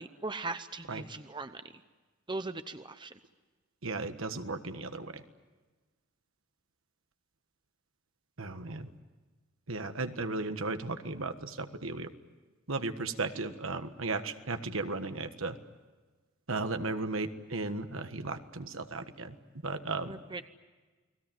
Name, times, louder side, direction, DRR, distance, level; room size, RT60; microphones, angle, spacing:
voice 1, 0.0-1.6 2.3-3.1 20.0-20.5, right 3 dB, 20° right, 10 dB, 0.8 m, -39 dB
voice 2, 3.8-5.2 8.4-8.9 9.7-12.1 12.7-15.6 16.5-19.3 19.6-20.2, right 3 dB, 70° right, 8 dB, 1.5 m, -35 dB
30.0 x 20.0 x 9.1 m, 1.3 s
head